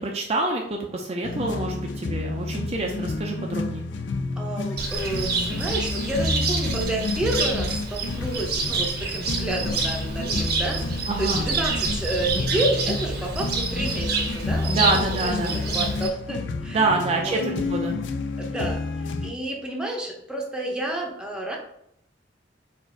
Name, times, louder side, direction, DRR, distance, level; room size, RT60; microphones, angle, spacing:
voice 1, 0.0-3.8 11.1-11.4 14.7-15.6 16.7-17.9, right 3 dB, 35° right, 0 dB, 0.5 m, -26 dB
sound 1, 1.2-19.3, left 3 dB, 85° left, 0.4 m, -30 dB
voice 2, 4.4-14.9 15.2-15.4 15.7-16.8 17.2-17.4 18.4-18.8 19.2-21.6, right 1 dB, 5° right, -1 dB, 0.8 m, -30 dB
Cricket, 4.8-16.1, right 4 dB, 60° right, 0.8 m, -28 dB
4.5 x 2.5 x 4.5 m, 0.74 s
head